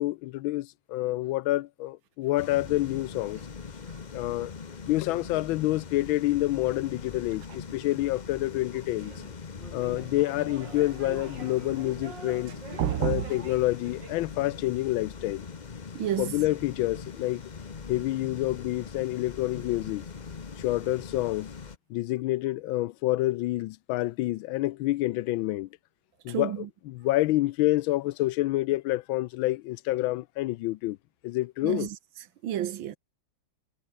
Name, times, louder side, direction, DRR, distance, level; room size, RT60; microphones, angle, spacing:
voice 1, 0.0-3.4 4.1-4.5 4.9-9.1 9.7-12.5 13.0-15.5 16.2-17.4 17.9-20.1 20.6-21.5 21.9-25.7 26.2-31.0 31.2-31.9, left 17 dB, 85° left, 1.4 m, -28 dB
sound 1, 2.4-21.8, left 5 dB, 35° left, 0.7 m, -42 dB
sound 2, 8.9-14.2, right 4 dB, 65° right, 3.9 m, -45 dB
voice 2, 12.8-13.3 16.0-16.4 26.3-26.7 31.6-32.0 32.4-33.0, right 11 dB, 80° right, 1.8 m, -29 dB
omnidirectional pair, 2.1 m